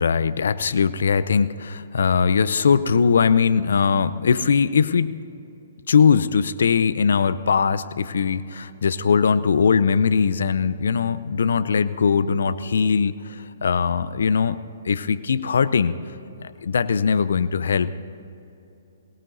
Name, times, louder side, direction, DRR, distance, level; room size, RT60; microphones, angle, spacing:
voice 1, 0.0-5.2 5.9-14.6 14.8-16.0 16.6-17.9, left 6 dB, 70° left, 14 dB, 0.6 m, -20 dB
22.5 x 18.0 x 2.7 m, 2.8 s
figure-of-eight pair, 125°, 0 cm